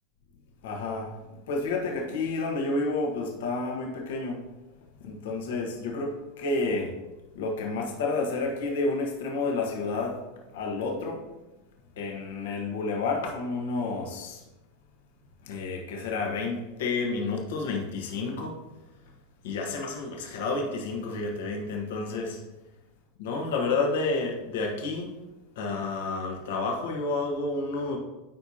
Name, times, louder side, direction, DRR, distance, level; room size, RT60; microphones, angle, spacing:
voice 1, 0.6-4.4 5.0-7.0 7.3-10.2 10.5-11.3 12.0-14.4 15.4-18.6 19.4-22.4 23.2-25.2 25.5-28.0, left 3 dB, 70° left, 1 dB, 1.5 m, -30 dB
12.5 x 4.8 x 2.9 m, 1.0 s
hypercardioid pair, 95°, 0 cm